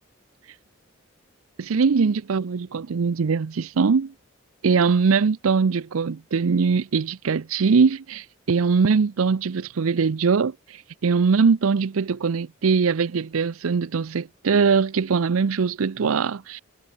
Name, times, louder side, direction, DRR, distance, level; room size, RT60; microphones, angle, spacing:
voice 1, 1.6-4.1 4.6-16.6, right 5 dB, 85° right, 0.5 m, -21 dB
head